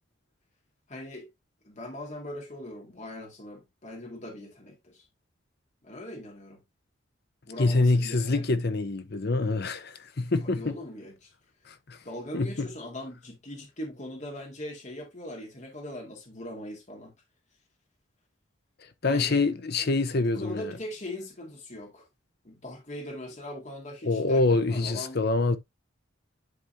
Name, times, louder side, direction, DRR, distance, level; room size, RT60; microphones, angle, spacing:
voice 1, 0.9-1.3 1.7-5.0 5.8-6.6 7.5-8.4 10.4-11.3 12.0-17.1 19.0-19.4 19.8-19.9 20.3-22.1 22.4-25.2, left 1 dB, 40° left, 2.1 m, -40 dB
voice 2, 7.6-10.8 11.7-12.0 12.3-12.7 19.0-20.7 24.0-25.6, left 3 dB, 55° left, 0.8 m, -25 dB
11.0 x 3.7 x 2.6 m
head